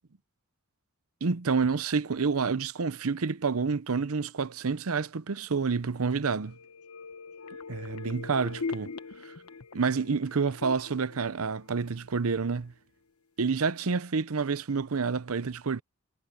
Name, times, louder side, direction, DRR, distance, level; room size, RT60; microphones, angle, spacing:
voice 1, 1.2-6.6 7.7-8.9 9.2-9.3 9.7-12.7 13.4-15.8, right 5 dB, 80° right, 0.7 m, -28 dB
sound 1, 6.4-12.1 12.5-12.6, left 4 dB, 85° left, 1.4 m, -41 dB
head